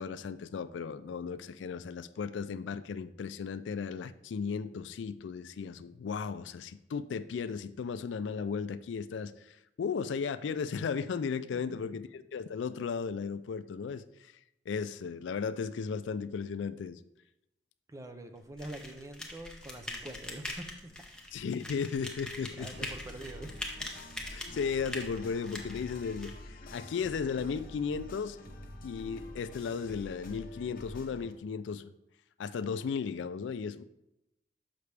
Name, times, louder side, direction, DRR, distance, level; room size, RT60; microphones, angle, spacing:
voice 1, 0.0-14.3 14.7-17.0 21.3-22.7 24.3-28.4 28.8-31.9 32.4-33.8, left 6 dB, 75° left, 13 dB, 0.3 m, -35 dB
voice 2, 17.9-20.9 22.5-23.6, right 1 dB, 15° right, 7 dB, 0.5 m, -45 dB
sound 1, 18.6-26.3, left 1 dB, 5° left, 0.8 m, -43 dB
sound 2, 22.7-31.3, left 1 dB, 50° left, 0.8 m, -47 dB
6.7 x 5.8 x 3.3 m, 0.88 s
head